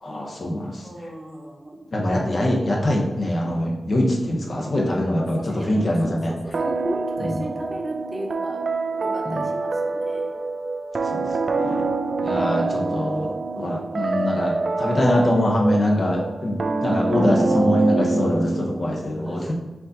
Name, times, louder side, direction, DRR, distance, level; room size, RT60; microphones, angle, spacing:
voice 1, 0.0-0.8 1.9-6.3 9.3-9.4 11.1-11.2 11.6-11.8 12.2-16.6 16.8-19.4, left 1 dB, 50° left, -1 dB, 0.9 m, -23 dB
voice 2, 0.8-1.8 4.9-5.0 5.4-8.6 9.0-10.3 11.5-12.3 19.2-19.5, right 1 dB, 25° right, 0 dB, 0.9 m, -35 dB
sound 1, 6.5-18.9, right 3 dB, 55° right, 0.3 m, -26 dB
4.6 x 2.7 x 3.9 m, 1.1 s
cardioid pair, 60°, 0 cm